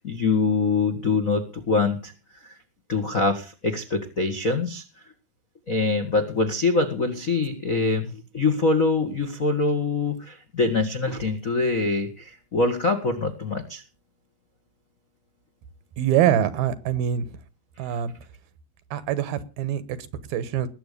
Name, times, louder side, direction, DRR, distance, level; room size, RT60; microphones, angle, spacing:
voice 1, 0.0-2.1 2.4-2.5 2.9-4.8 5.7-13.8, left 3 dB, 50° left, 7 dB, 0.9 m, -24 dB
voice 2, 16.0-17.4 17.8-18.1 18.9-20.7, right 10 dB, 75° right, 14 dB, 2.9 m, -24 dB
20.0 x 8.1 x 6.7 m, 0.34 s
omnidirectional pair, 4.5 m